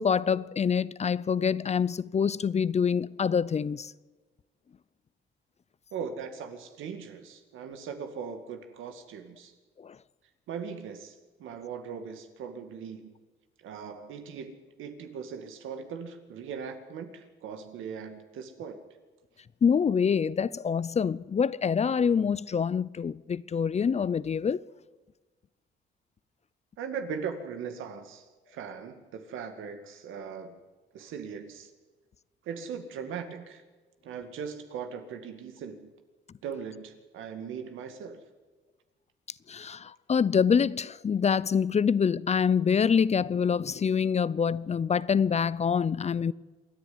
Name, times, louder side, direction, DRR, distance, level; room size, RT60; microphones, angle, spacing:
voice 1, 0.0-3.9 9.8-10.0 19.6-24.6 39.5-46.3, left 6 dB, 35° left, 0.6 m, -26 dB
voice 2, 5.9-9.5 10.5-13.1 13.6-18.8 26.8-30.6 30.9-31.7 32.4-33.6 34.0-35.9 36.4-38.2, right 6 dB, 85° right, 2.3 m, -39 dB
27.0 x 10.5 x 9.7 m
cardioid pair, 90°, 20 cm